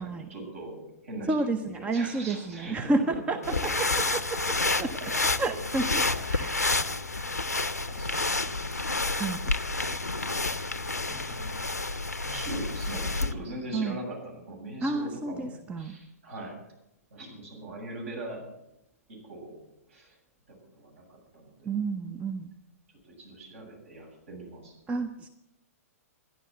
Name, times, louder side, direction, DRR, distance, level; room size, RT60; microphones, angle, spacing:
voice 1, 0.0-2.9 6.5-6.9 7.9-8.5 10.9-11.5 12.2-16.6 17.1-18.4 19.1-19.6 19.9-20.2 20.5-21.7 23.0-24.7, right 1 dB, 60° right, 0 dB, 7.8 m, -41 dB
voice 2, 1.3-4.9 5.4-6.8 9.2-9.5 13.7-14.0 14.8-16.0 21.6-22.5 24.9-25.3, right 3 dB, 15° right, 8 dB, 0.8 m, -31 dB
sound 1, 3.4-13.3, left 3 dB, 90° left, 0.8 m, -29 dB
13.5 x 11.0 x 7.8 m, 0.86 s
figure-of-eight pair, 110°, 8 cm